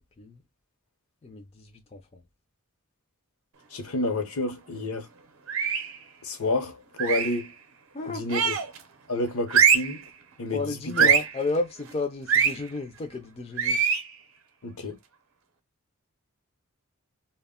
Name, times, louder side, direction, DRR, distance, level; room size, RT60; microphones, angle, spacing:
voice 1, 1.2-2.2 7.9-8.2 10.5-13.8, left 3 dB, 25° left, 0.3 m, -32 dB
voice 2, 3.7-5.1 6.2-7.5 8.1-8.5 9.1-10.0 10.4-10.6 11.0-11.1 14.6-15.0, left 2 dB, 75° left, 0.7 m, -29 dB
sound 1, 5.5-6.0 7.0-7.4 8.3-8.8 9.5-10.0 11.0-11.4 12.3-12.6 13.6-14.1, right 7 dB, 65° right, 0.5 m, -22 dB
2.1 x 2.1 x 3.5 m
head